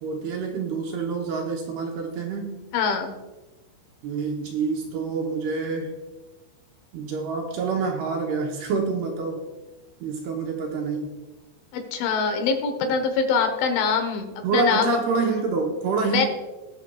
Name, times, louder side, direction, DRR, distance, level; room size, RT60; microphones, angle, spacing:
voice 1, 0.0-2.6 4.0-6.0 6.9-9.4 10.0-11.1 14.4-16.3, right 4 dB, 75° right, 1 dB, 2.6 m, -27 dB
voice 2, 2.7-3.1 11.7-15.2 16.1-16.3, left 5 dB, 85° left, 6 dB, 3.6 m, -24 dB
20.0 x 6.7 x 2.4 m, 1.1 s
omnidirectional pair, 5.3 m